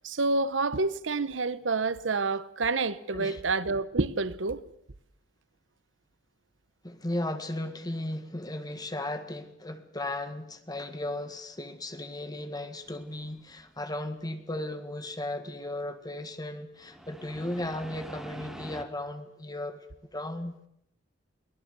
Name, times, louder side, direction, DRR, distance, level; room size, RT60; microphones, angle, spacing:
voice 1, 0.0-4.6, right 3 dB, 80° right, 0.9 m, -28 dB
voice 2, 6.8-19.9 20.1-20.6, left 1 dB, 20° left, 1.8 m, -36 dB
sound 1, 12.9-13.9 16.8-18.8, equal, ahead, 1.8 m, -45 dB
23.0 x 18.5 x 6.9 m
head